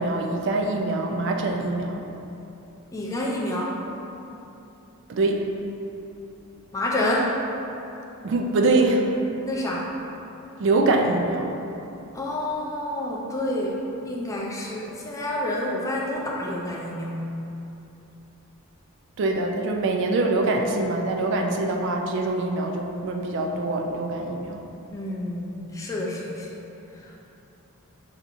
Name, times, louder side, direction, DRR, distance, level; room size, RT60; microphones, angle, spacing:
voice 1, 0.0-2.1 5.1-5.5 8.2-9.1 10.6-11.6 19.2-24.6, right 2 dB, 55° right, 2 dB, 0.3 m, -24 dB
voice 2, 2.9-3.8 6.7-7.4 9.4-9.9 12.1-17.2 24.9-26.5 27.0-27.2, left 1 dB, 15° left, -3 dB, 0.4 m, -28 dB
5.8 x 2.8 x 2.5 m, 2.9 s
head